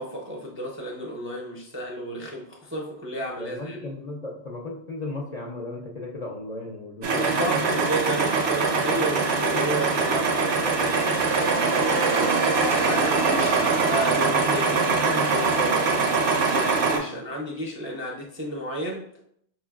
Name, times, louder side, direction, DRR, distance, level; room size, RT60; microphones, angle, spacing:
voice 1, 0.0-3.9 7.1-12.3 12.8-19.1, equal, 15° right, -1 dB, 0.4 m, -33 dB
voice 2, 3.4-7.5 17.0-17.2, left 2 dB, 50° left, -1 dB, 0.6 m, -35 dB
sound 1, 7.0-17.0, right 4 dB, 75° right, 1.0 m, -23 dB
5.1 x 3.1 x 2.3 m, 0.70 s
omnidirectional pair, 1.1 m